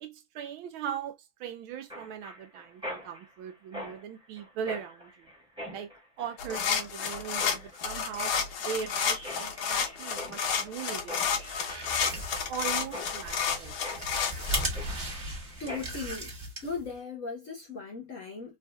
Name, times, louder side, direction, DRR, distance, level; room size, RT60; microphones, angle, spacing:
voice 1, 0.0-5.3 5.7-5.9 6.2-11.6 12.0-12.1 12.5-13.8, right 8 dB, 75° right, 1.4 m, -39 dB
Mechanisms, 1.9-16.1, left 1 dB, 5° right, 1.0 m, -44 dB
sound 1, 6.4-14.7, left 7 dB, 70° left, 1.6 m, -31 dB
sound 2, 11.4-16.9, right 1 dB, 30° right, 1.2 m, -37 dB
voice 2, 15.6-16.3 16.6-18.6, left 4 dB, 50° left, 1.1 m, -37 dB
4.0 x 2.7 x 2.2 m
omnidirectional pair, 2.4 m